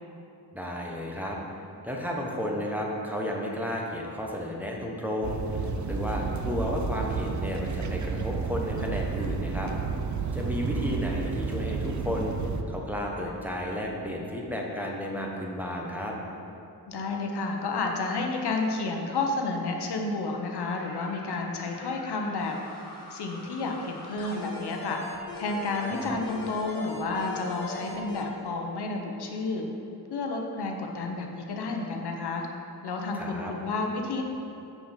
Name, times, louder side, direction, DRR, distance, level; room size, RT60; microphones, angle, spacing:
voice 1, 0.5-1.4 1.8-9.7 10.3-12.3 12.7-16.2 25.8-26.2 33.1-33.5, left 1 dB, 5° right, -2 dB, 0.9 m, -33 dB
sound 1, 5.2-12.6, right 5 dB, 45° right, 0.6 m, -31 dB
voice 2, 16.9-22.6 23.1-25.0 25.4-29.7 30.1-32.5 32.8-34.2, left 3 dB, 75° left, 2 dB, 1.0 m, -31 dB
sound 2, 20.6-28.2, left 2 dB, 55° left, 1.7 m, -42 dB
6.9 x 6.1 x 5.7 m, 2.7 s
wide cardioid pair, 135°, 39 cm